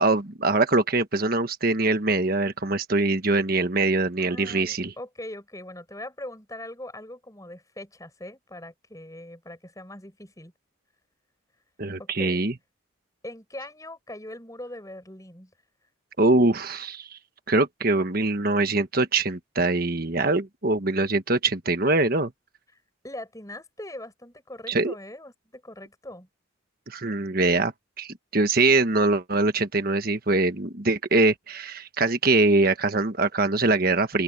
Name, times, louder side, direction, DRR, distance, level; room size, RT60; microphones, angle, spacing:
voice 1, 0.0-4.9 11.8-12.5 16.2-17.2 17.5-22.3 24.7-24.9 26.9-27.7 28.0-34.2, right 2 dB, 50° right, 1.4 m, -23 dB
voice 2, 4.2-10.5 12.0-12.4 13.2-15.5 23.0-26.3, left 1 dB, 15° left, 6.6 m, -41 dB
open air
head